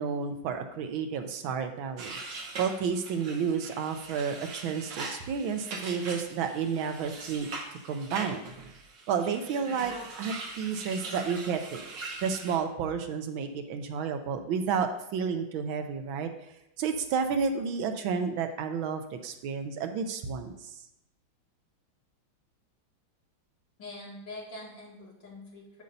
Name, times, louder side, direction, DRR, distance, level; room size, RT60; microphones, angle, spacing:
voice 1, 0.0-2.1 2.6-7.5 7.9-8.4 9.1-11.8 12.2-16.3 16.8-20.5, right 6 dB, 80° right, 7 dB, 1.4 m, -31 dB
sound 1, 2.0-12.6, right 3 dB, 65° right, 1.6 m, -41 dB
voice 2, 23.8-25.8, left 2 dB, 60° left, -4 dB, 2.7 m, -44 dB
8.2 x 7.7 x 2.7 m, 0.87 s
omnidirectional pair, 2.3 m